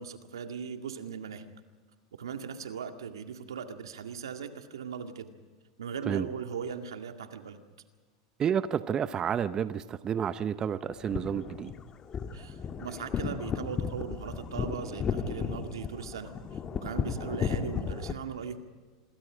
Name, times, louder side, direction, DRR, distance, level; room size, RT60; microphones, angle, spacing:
voice 1, 0.0-1.4 2.2-5.3 5.8-7.6 12.3-18.6, right 7 dB, 85° right, 6 dB, 2.1 m, -39 dB
voice 2, 8.4-11.7, right 8 dB, 30° right, 13 dB, 0.8 m, -30 dB
sound 1, 10.9-18.1, left 6 dB, 30° left, 1.7 m, -34 dB
26.5 x 22.5 x 5.1 m, 1.4 s
hypercardioid pair, 100°, 2 cm